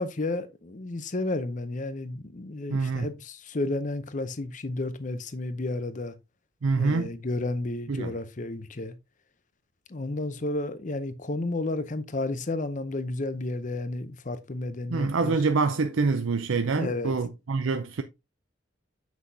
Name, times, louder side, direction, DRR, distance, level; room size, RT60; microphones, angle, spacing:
voice 1, 0.0-6.2 6.8-9.0 9.9-15.4 16.8-17.2, left 2 dB, 40° left, 0.6 m, -32 dB
voice 2, 2.7-3.1 6.6-7.1 7.9-8.2 14.9-18.0, right 4 dB, 75° right, 0.5 m, -26 dB
7.3 x 6.1 x 2.7 m
head